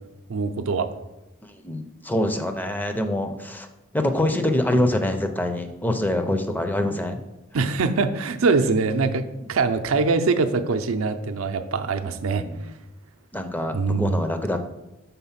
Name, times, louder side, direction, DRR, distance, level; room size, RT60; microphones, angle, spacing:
voice 1, 0.3-0.9 7.5-12.4 13.7-14.2, right 4 dB, 75° right, 7 dB, 0.5 m, -23 dB
voice 2, 1.6-3.7 3.9-7.2 12.3-12.6 13.3-14.6, left 1 dB, 10° left, 6 dB, 0.5 m, -25 dB
5.7 x 3.9 x 5.7 m, 0.98 s
head